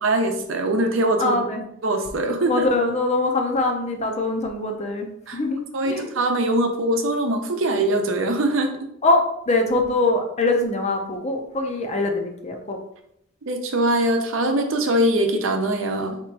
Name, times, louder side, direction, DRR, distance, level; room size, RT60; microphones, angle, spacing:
voice 1, 0.0-1.4 1.8-2.7 5.3-5.4 5.7-8.8 13.5-16.2, right 1 dB, 75° right, 4 dB, 0.7 m, -22 dB
voice 2, 1.2-1.6 2.5-6.1 9.0-12.8, left 2 dB, 35° left, 3 dB, 0.6 m, -23 dB
3.4 x 2.9 x 4.6 m, 0.76 s
head